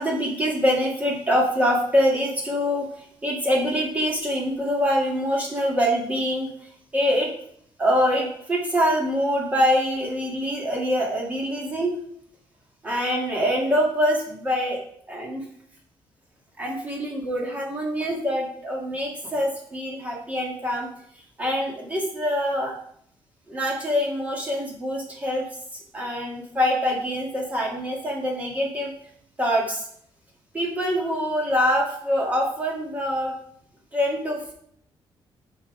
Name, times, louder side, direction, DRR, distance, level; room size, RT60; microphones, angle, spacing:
voice 1, 0.0-2.9 3.2-6.5 6.9-7.3 7.8-12.0 12.8-14.8 15.1-15.4 16.6-20.9 21.4-22.8 23.5-25.5 25.9-28.9 29.4-29.9 30.5-33.4 33.9-34.5, equal, 15° right, -2 dB, 1.9 m, -24 dB
6.0 x 5.8 x 4.8 m, 0.66 s
cardioid pair, 180°, 9 cm